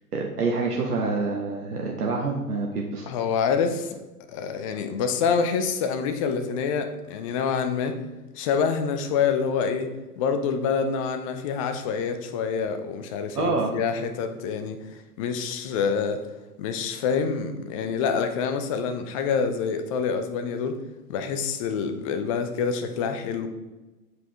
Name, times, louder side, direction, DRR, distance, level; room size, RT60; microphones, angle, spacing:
voice 1, 0.1-3.1 13.3-13.7, right 3 dB, 75° right, 0 dB, 1.1 m, -27 dB
voice 2, 3.1-4.0 4.3-8.0 8.4-14.8 15.2-16.2 16.6-20.8 21.1-23.5, left 6 dB, 25° left, 8 dB, 0.4 m, -26 dB
7.8 x 4.9 x 3.4 m, 1.1 s
figure-of-eight pair, 105°, 46 cm